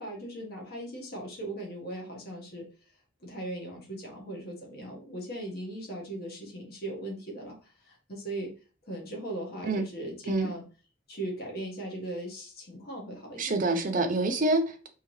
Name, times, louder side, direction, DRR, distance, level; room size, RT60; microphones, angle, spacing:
voice 1, 0.0-2.7 3.2-8.5 8.8-10.6 11.1-13.6, right 1 dB, 55° left, 1.5 m, -38 dB
voice 2, 13.4-14.9, right 2 dB, 45° right, 0.7 m, -26 dB
4.7 x 3.0 x 3.1 m
head